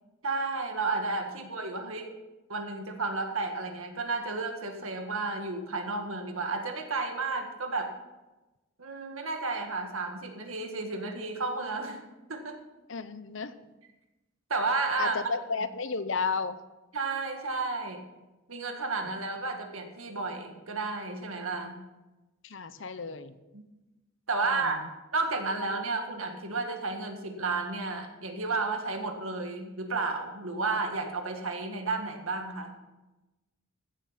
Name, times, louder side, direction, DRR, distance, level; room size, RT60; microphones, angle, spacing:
voice 1, 0.2-2.1 2.5-7.9 8.8-12.0 12.3-12.6 14.5-15.2 16.9-18.0 18.5-21.8 23.5-23.6 24.3-24.8 25.1-32.8, right 3 dB, 70° right, 4 dB, 1.8 m, -32 dB
voice 2, 12.9-13.5 15.0-16.6 22.4-23.3 24.5-24.8, left 4 dB, 60° left, 13 dB, 0.8 m, -33 dB
15.0 x 7.7 x 5.8 m, 1.0 s
head